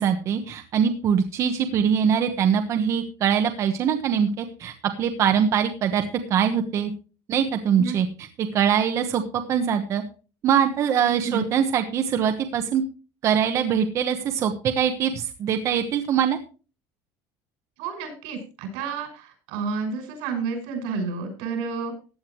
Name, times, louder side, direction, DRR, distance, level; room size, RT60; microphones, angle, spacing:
voice 1, 0.0-6.0 6.3-6.9 7.3-10.0 10.4-12.8 13.2-16.4, right 8 dB, 35° right, 6 dB, 1.1 m, -23 dB
voice 2, 17.8-21.9, right 5 dB, 80° right, 4 dB, 6.2 m, -30 dB
15.5 x 10.5 x 3.1 m, 0.35 s
cardioid pair, 175°, 9 cm